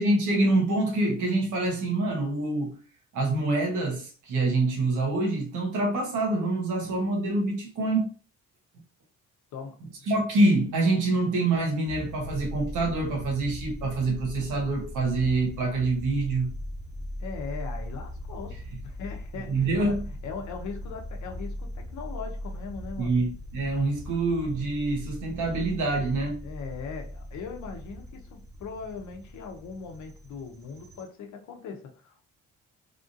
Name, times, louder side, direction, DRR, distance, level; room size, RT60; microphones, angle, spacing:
voice 1, 0.0-2.8 3.1-8.1 10.1-16.5 19.5-20.0 23.0-26.4, right 2 dB, 80° right, 1.1 m, -26 dB
voice 2, 9.5-10.2 17.2-23.2 26.4-32.2, left 5 dB, 75° left, 0.8 m, -40 dB
sound 1, 11.8-31.0, left 1 dB, 10° right, 1.0 m, -39 dB
3.5 x 2.6 x 2.5 m
cardioid pair, 90°, 30 cm